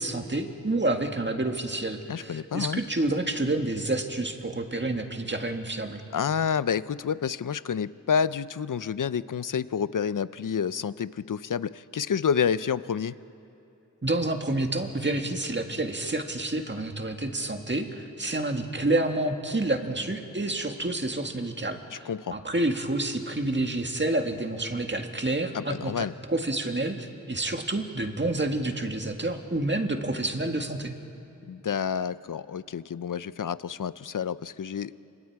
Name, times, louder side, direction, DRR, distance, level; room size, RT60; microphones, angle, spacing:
voice 1, 0.0-6.0 14.0-30.9, right 2 dB, 35° right, 5 dB, 1.9 m, -29 dB
voice 2, 2.1-2.8 6.1-13.1 22.1-22.4 25.5-26.1 31.5-34.9, left 7 dB, 75° left, 17 dB, 0.6 m, -29 dB
29.5 x 26.5 x 4.8 m, 2.7 s
wide cardioid pair, 55°, 32 cm